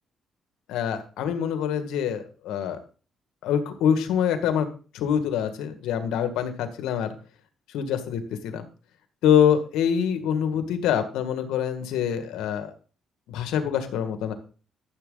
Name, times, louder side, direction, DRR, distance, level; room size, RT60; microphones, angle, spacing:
voice 1, 0.7-2.8 3.4-4.7 4.9-7.1 7.7-8.6 9.2-12.7 13.3-14.3, left 8 dB, 90° left, 8 dB, 1.8 m, -25 dB
13.5 x 7.4 x 4.0 m, 0.37 s
cardioid pair, 90°, 0 cm